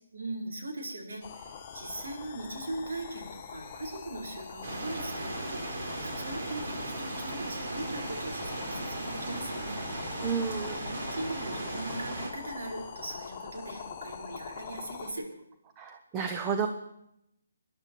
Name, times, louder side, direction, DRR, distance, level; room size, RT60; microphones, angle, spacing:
voice 1, 0.1-10.1 10.8-15.3, right 2 dB, 75° right, -1 dB, 4.6 m, -40 dB
sound 1, 1.2-15.1, left 6 dB, 25° left, 1.7 m, -44 dB
sound 2, 4.6-12.3, right 2 dB, 55° right, 4.1 m, -37 dB
voice 2, 10.2-10.8 15.8-16.7, right 6 dB, 20° right, 6 dB, 0.9 m, -31 dB
20.0 x 11.5 x 4.7 m, 0.81 s
hypercardioid pair, 155°, 0 cm